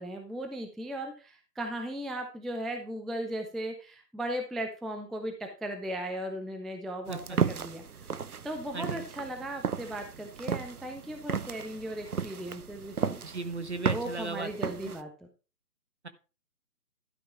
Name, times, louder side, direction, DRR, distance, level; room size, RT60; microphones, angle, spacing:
voice 1, 0.0-8.2 8.4-13.2 13.9-15.3, right 1 dB, ahead, 5 dB, 0.5 m, -37 dB
sound 1, 7.1-15.0, right 6 dB, 65° right, 0.8 m, -34 dB
voice 2, 8.7-9.0 13.2-14.5 14.8-14.9, right 3 dB, 45° right, 10 dB, 1.1 m, -36 dB
12.5 x 5.5 x 4.3 m, 0.33 s
figure-of-eight pair, 170°, 48 cm